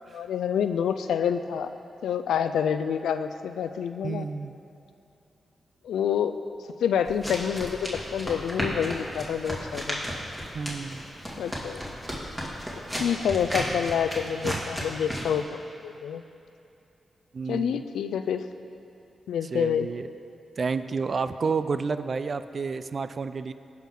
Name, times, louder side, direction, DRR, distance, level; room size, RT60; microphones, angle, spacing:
voice 1, 0.1-1.7 2.0-4.3 5.8-6.3 6.8-10.0 11.4-11.8 13.0-16.2 17.5-18.4 19.3-19.9, left 8 dB, 90° left, 10 dB, 0.3 m, -27 dB
voice 2, 4.0-4.6 10.5-11.1 14.4-14.6 17.3-17.8 19.5-20.1 20.6-23.5, right 5 dB, 55° right, 12 dB, 0.4 m, -30 dB
sound 1, 7.1-15.4, equal, 5° right, 2.4 m, -34 dB
16.0 x 5.8 x 3.8 m, 2.7 s
cardioid pair, 50°, 0 cm